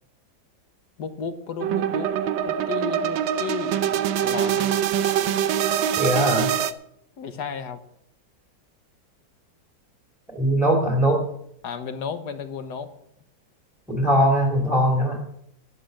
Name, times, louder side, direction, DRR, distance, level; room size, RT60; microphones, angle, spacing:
voice 1, 1.0-2.1 2.4-4.7 7.2-7.8 11.6-12.9, left 6 dB, 65° left, 9 dB, 1.7 m, -33 dB
sound 1, 1.6-6.7, right 9 dB, 90° right, 1.5 m, -24 dB
voice 2, 6.0-6.5 10.3-11.2 13.9-15.2, equal, ahead, -1 dB, 2.7 m, -20 dB
12.5 x 11.0 x 6.4 m, 0.73 s
omnidirectional pair, 2.0 m